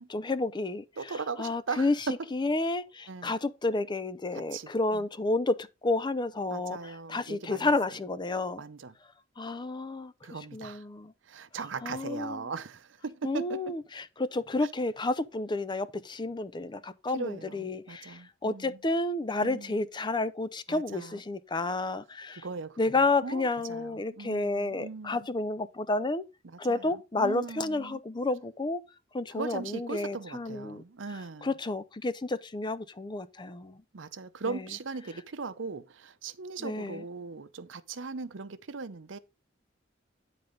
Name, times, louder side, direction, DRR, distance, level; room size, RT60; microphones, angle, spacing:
voice 1, 0.1-2.0 2.3-8.6 9.4-10.1 10.5-11.1 11.8-12.5 13.2-22.5 22.8-26.2 26.6-28.8 29.1-30.8 31.1-33.8 34.4-34.6 36.6-37.0, left 2 dB, 25° left, 0.6 m, -31 dB
voice 2, 1.0-2.2 3.1-3.3 4.5-5.1 6.5-7.7 8.6-8.9 10.2-10.8 11.3-13.7 17.1-18.8 19.4-19.7 20.7-21.2 22.3-25.3 26.4-28.0 29.3-31.5 33.9-39.2, right 4 dB, 80° right, 0.7 m, -39 dB
9.7 x 4.1 x 5.1 m
head